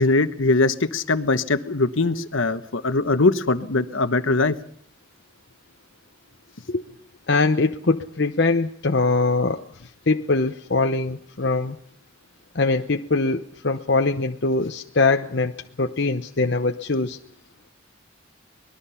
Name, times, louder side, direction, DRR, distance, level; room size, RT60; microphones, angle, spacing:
voice 1, 0.0-4.5, left 3 dB, 70° left, 11 dB, 1.1 m, -21 dB
voice 2, 7.3-9.7 10.1-11.8 12.5-17.2, left 3 dB, 55° left, 5 dB, 0.8 m, -22 dB
24.5 x 20.0 x 5.7 m, 0.67 s
head